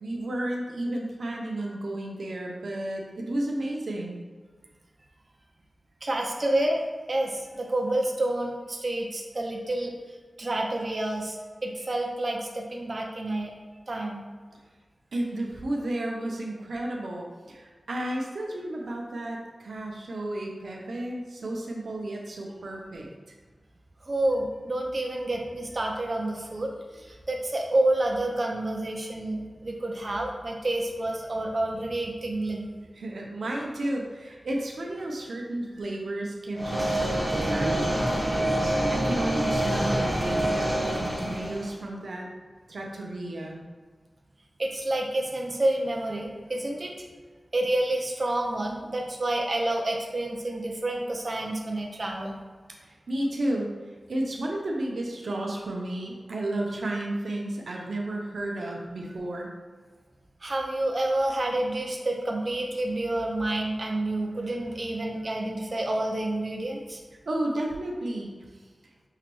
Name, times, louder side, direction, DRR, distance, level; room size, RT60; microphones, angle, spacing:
voice 1, 0.0-4.2 15.1-23.1 32.9-42.3 42.7-43.6 52.8-59.5 67.3-68.3, right 1 dB, 85° right, -1 dB, 0.7 m, -32 dB
voice 2, 6.0-9.9 10.4-11.4 11.6-13.5 13.9-14.2 24.1-32.7 44.6-47.0 47.5-52.4 60.4-67.0, right 1 dB, 45° right, 0 dB, 0.6 m, -29 dB
sound 1, 36.5-41.7, right 1 dB, 5° right, 1.1 m, -26 dB
5.7 x 3.0 x 3.0 m, 1.5 s
wide cardioid pair, 75°, 0 cm